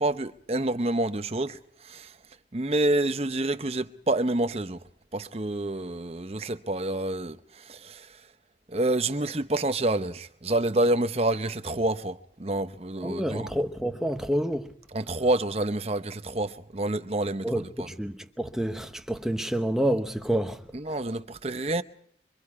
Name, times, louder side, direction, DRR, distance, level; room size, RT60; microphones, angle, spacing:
voice 1, 0.0-2.2 2.5-4.8 5.1-8.2 8.7-13.5 14.9-17.9 20.7-21.8, right 2 dB, 35° right, 0.8 m, -28 dB
voice 2, 13.0-14.8 17.4-21.0, right 1 dB, 5° right, 1.0 m, -29 dB
25.5 x 24.0 x 4.8 m
head